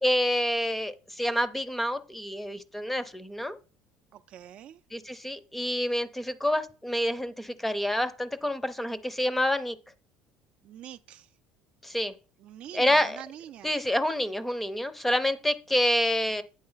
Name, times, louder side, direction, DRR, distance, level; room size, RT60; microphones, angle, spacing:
voice 1, 0.0-3.6 4.9-9.8 11.8-12.1 12.7-13.2 13.6-16.4, left 1 dB, 5° left, 0.6 m, -28 dB
voice 2, 4.1-4.8 10.6-11.3 12.4-13.7, right 11 dB, 50° right, 0.4 m, -45 dB
8.8 x 3.8 x 5.6 m
cardioid pair, 125°, 3 cm